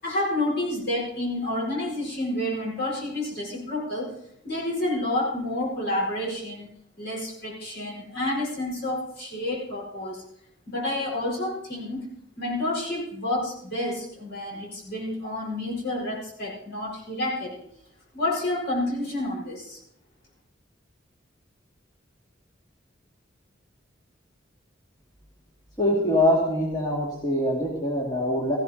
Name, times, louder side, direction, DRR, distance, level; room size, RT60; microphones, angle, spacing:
voice 1, 0.0-4.2 4.4-6.7 7.0-10.2 10.7-12.1 12.4-17.6 18.1-19.8, left 1 dB, 60° left, -4 dB, 5.3 m, -29 dB
voice 2, 25.8-28.6, left 1 dB, 20° left, -3 dB, 2.4 m, -23 dB
18.0 x 15.0 x 2.9 m, 0.71 s
head